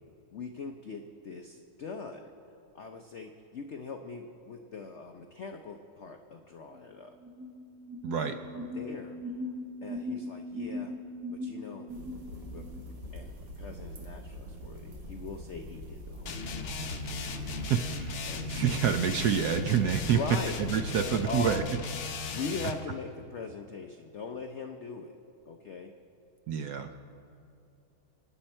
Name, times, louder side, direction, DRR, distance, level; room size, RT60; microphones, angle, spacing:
voice 1, 0.3-2.3 2.7-7.2 8.2-9.5 9.8-10.9 11.3-11.9 12.5-12.7 13.1-16.6 17.4-17.6 18.2-18.8 20.1-20.6 21.0-21.7 22.3-25.2 25.5-25.9, left 4 dB, 85° left, 5 dB, 0.6 m, -41 dB
sound 1, 6.7-6.8 7.1-12.8, left 1 dB, ahead, 1.0 m, -39 dB
voice 2, 8.0-8.4 17.4-20.2 20.6-21.6 22.1-22.2 26.5-26.9, right 8 dB, 70° right, 7 dB, 1.0 m, -28 dB
sound 2, 11.9-21.7, equal, 85° right, 2.4 m, -44 dB
sound 3, 16.3-22.9, left 4 dB, 55° left, 0.8 m, -37 dB
27.5 x 9.2 x 4.4 m, 2.5 s
omnidirectional pair, 2.2 m